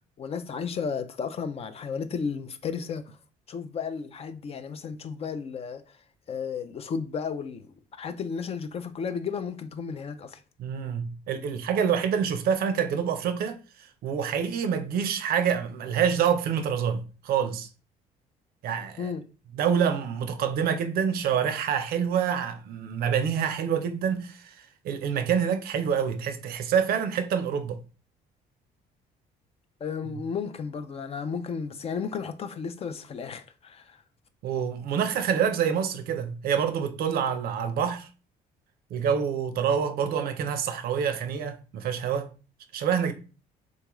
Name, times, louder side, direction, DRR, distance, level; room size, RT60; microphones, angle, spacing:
voice 1, 0.2-3.0 3.5-5.8 6.3-10.4 19.0-19.2 29.8-34.0, left 6 dB, 35° left, 0.4 m, -33 dB
voice 2, 10.6-13.6 14.0-17.7 18.6-19.1 19.5-24.6 24.8-27.8 34.4-38.1 38.9-42.3 42.7-43.1, right 7 dB, 65° right, 0.5 m, -27 dB
3.7 x 2.3 x 3.0 m
cardioid pair, 110°, 17 cm